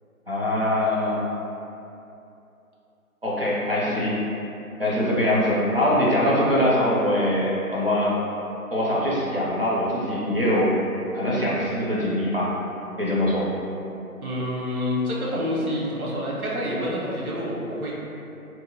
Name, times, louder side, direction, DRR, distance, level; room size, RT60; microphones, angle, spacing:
voice 1, 0.3-1.2 3.2-4.2 4.8-8.1 8.7-10.8 11.1-12.5 13.0-13.5, left 1 dB, 45° right, -7 dB, 0.4 m, -23 dB
voice 2, 14.2-17.9, left 1 dB, 75° right, -5 dB, 0.8 m, -28 dB
2.7 x 2.1 x 2.7 m, 2.8 s
figure-of-eight pair, 160°, 44 cm